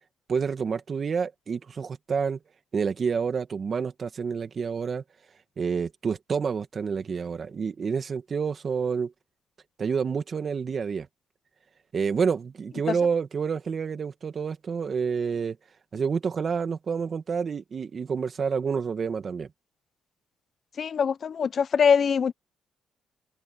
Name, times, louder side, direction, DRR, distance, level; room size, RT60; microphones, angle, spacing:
voice 1, 0.3-2.4 2.7-5.0 5.6-9.1 9.8-11.1 11.9-15.6 15.9-19.5, right 6 dB, 45° right, 2.2 m, -28 dB
voice 2, 20.8-22.3, left 6 dB, 50° left, 1.0 m, -23 dB
cardioid pair, 90°, 0 cm